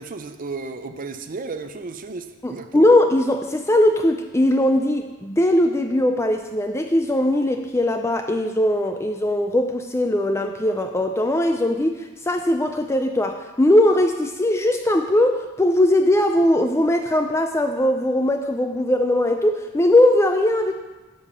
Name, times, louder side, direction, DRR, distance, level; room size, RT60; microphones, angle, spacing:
voice 1, 0.0-2.9, right 3 dB, 40° right, 8 dB, 0.5 m, -33 dB
voice 2, 2.4-12.0 12.3-20.7, left 1 dB, 15° left, 5 dB, 0.4 m, -20 dB
9.9 x 5.4 x 6.8 m, 1.2 s
head